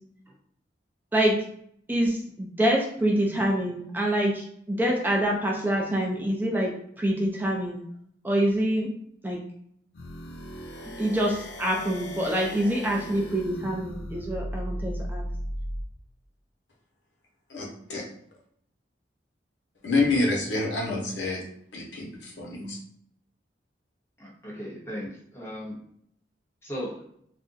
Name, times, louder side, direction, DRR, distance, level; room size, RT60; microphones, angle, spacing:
voice 1, 1.9-7.8 8.2-8.9 9.2-9.5 11.0-15.3, right 1 dB, 10° right, 0 dB, 0.4 m, -26 dB
sound 1, 9.9-15.9, equal, 70° left, 0.5 m, -37 dB
voice 2, 17.5-18.0 19.8-21.4 21.7-22.8, left 2 dB, 85° left, -2 dB, 0.9 m, -27 dB
voice 3, 24.2-25.8 26.6-27.0, equal, 15° left, -6 dB, 1.0 m, -37 dB
2.5 x 2.2 x 3.8 m, 0.66 s
head